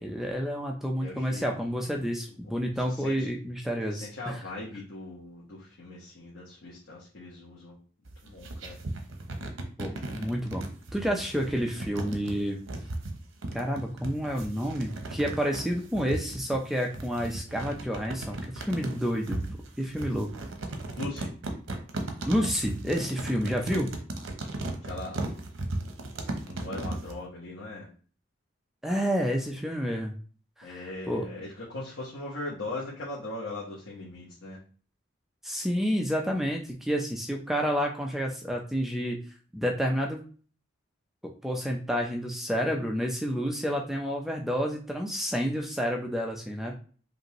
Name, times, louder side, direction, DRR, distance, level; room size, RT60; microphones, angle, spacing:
voice 1, 0.0-4.4 9.8-10.6 10.9-12.6 13.5-19.4 19.8-20.3 22.3-23.9 28.8-30.1 30.6-30.8 31.1-31.3 35.4-39.2 39.5-40.2 41.4-46.7, equal, ahead, 1 dB, 0.5 m, -29 dB
voice 2, 1.0-2.1 2.4-3.3 3.9-7.8 8.2-8.8 20.9-21.3 24.8-25.2 26.4-27.9 30.6-34.6, left 2 dB, 80° left, -7 dB, 1.3 m, -40 dB
sound 1, 8.1-27.2, right 2 dB, 85° right, 0.8 m, -36 dB
5.2 x 2.6 x 3.0 m, 0.40 s
head